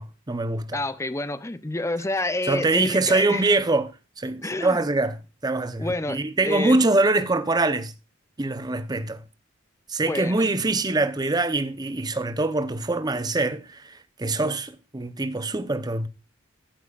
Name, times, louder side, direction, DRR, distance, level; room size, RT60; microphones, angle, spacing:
voice 1, 0.0-0.8 2.5-3.9 4.2-5.2 5.4-7.9 8.4-9.2 9.9-16.1, right 2 dB, 20° right, 0.7 m, -24 dB
voice 2, 0.7-3.5 4.4-4.9 5.8-6.8 10.0-10.5, left 2 dB, 15° left, 0.6 m, -29 dB
15.0 x 9.3 x 2.4 m
head